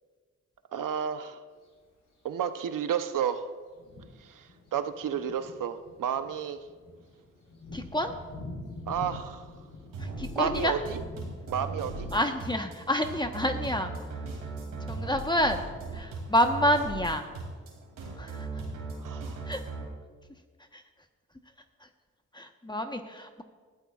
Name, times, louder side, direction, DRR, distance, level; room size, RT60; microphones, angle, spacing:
voice 1, 0.7-1.4 2.2-3.5 4.2-6.6 8.9-9.5 10.3-11.0 11.5-12.1 19.0-19.4, right 8 dB, 75° right, 10 dB, 0.8 m, -31 dB
Thunder, 1.5-1.6 2.6-2.7 3.3-3.4 3.7-17.5, left 2 dB, 65° left, 3.9 m, -47 dB
voice 2, 7.7-8.1 10.0-10.8 12.1-13.9 14.9-15.6 15.9-17.3 18.2-18.6 19.4-19.6 20.7-20.8 21.8-21.9 22.3-23.4, equal, 15° left, 5 dB, 1.1 m, -28 dB
sound 1, 9.9-19.8, right 3 dB, 90° right, 2.7 m, -38 dB
19.5 x 12.5 x 2.4 m, 1.5 s
cardioid pair, 50°, 33 cm